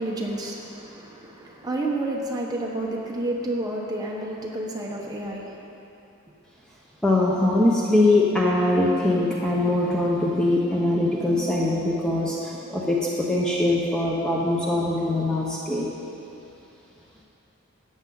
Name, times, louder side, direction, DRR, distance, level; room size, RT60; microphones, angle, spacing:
voice 1, 0.0-5.6, right 1 dB, 20° right, -2 dB, 1.0 m, -30 dB
voice 2, 7.0-15.9, left 2 dB, 5° left, -5 dB, 0.8 m, -22 dB
13.0 x 8.8 x 4.0 m, 2.7 s
head